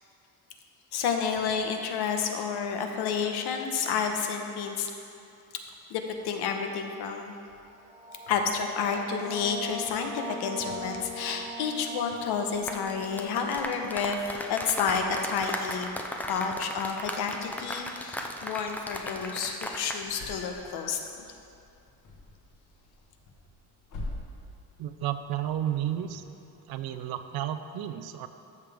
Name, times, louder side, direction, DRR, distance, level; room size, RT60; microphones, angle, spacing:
voice 1, 0.9-4.9 5.9-7.3 8.3-15.9 16.3-21.0, left 6 dB, 80° left, 4 dB, 1.0 m, -30 dB
sound 1, 7.8-15.0, equal, 10° right, 0.7 m, -42 dB
sound 2, 12.5-20.0 20.3-20.5, left 1 dB, 5° left, 0.3 m, -37 dB
sound 3, 18.7-27.2, left 1 dB, 50° left, 1.5 m, -48 dB
voice 2, 24.8-26.2 26.7-28.3, right 11 dB, 70° right, 10 dB, 0.6 m, -32 dB
13.5 x 6.8 x 3.5 m, 2.6 s
cardioid pair, 165°, 38 cm